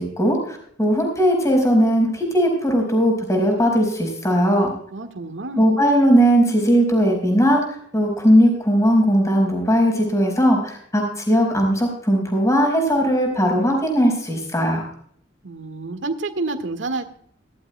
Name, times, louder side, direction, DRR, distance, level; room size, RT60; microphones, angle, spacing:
voice 1, 0.0-4.7 5.6-14.9, equal, 15° left, 2 dB, 4.7 m, -18 dB
voice 2, 4.9-5.6 15.4-17.2, right 3 dB, 70° right, 6 dB, 1.7 m, -29 dB
18.0 x 13.0 x 2.2 m, 0.63 s
head